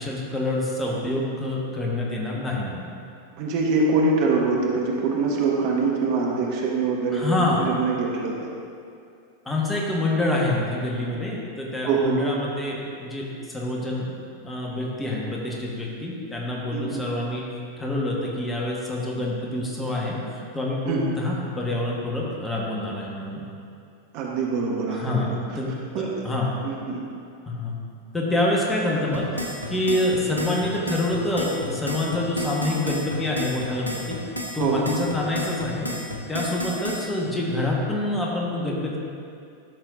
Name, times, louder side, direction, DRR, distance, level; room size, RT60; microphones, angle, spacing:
voice 1, 0.0-2.9 7.1-7.7 9.4-14.1 14.4-17.4 17.8-23.4 24.9-25.3 25.5-25.7 26.0-26.5 27.5-27.7 28.1-34.2 34.5-35.9 36.3-39.0, left 1 dB, 10° left, -3 dB, 1.4 m, -26 dB
voice 2, 3.4-8.3 11.8-12.2 16.7-17.0 20.9-21.1 24.1-25.0 25.9-26.1 26.6-27.0 34.6-34.8, right 4 dB, 45° right, -2 dB, 1.1 m, -24 dB
sound 1, 29.1-37.1, left 1 dB, 85° left, 1.0 m, -32 dB
12.0 x 6.4 x 2.7 m, 2.4 s
figure-of-eight pair, 90°, 0 cm